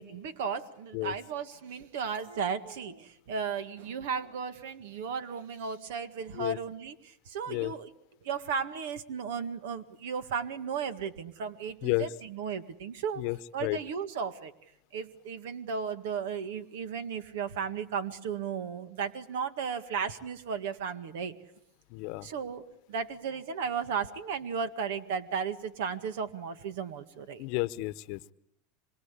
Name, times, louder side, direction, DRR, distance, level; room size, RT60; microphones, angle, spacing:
voice 1, 0.0-7.9 8.2-13.2 13.5-14.5 14.9-21.3 22.2-22.6 22.9-27.4, right 6 dB, 80° right, 11 dB, 1.8 m, -35 dB
voice 2, 13.2-13.8 21.9-22.3 27.4-28.3, left 21 dB, 60° left, 16 dB, 1.0 m, -32 dB
25.5 x 23.0 x 8.3 m, 0.77 s
supercardioid pair, 125°, 0 cm